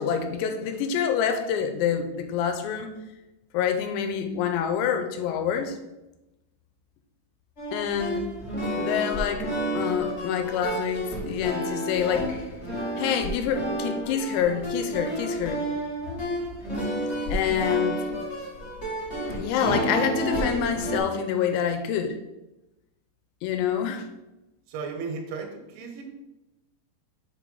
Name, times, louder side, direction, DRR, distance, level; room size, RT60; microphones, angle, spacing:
voice 1, 0.0-2.9 3.5-5.8 7.7-8.3 8.8-12.4 13.0-15.6 17.3-18.0 19.3-22.2 23.4-24.1, left 8 dB, 80° left, 7 dB, 2.7 m, -27 dB
sound 1, 7.6-21.0, right 1 dB, 35° left, 1.0 m, -30 dB
voice 2, 24.7-26.0, right 4 dB, 90° right, 3 dB, 3.4 m, -35 dB
6.9 x 3.3 x 5.2 m, 0.97 s
omnidirectional pair, 5.1 m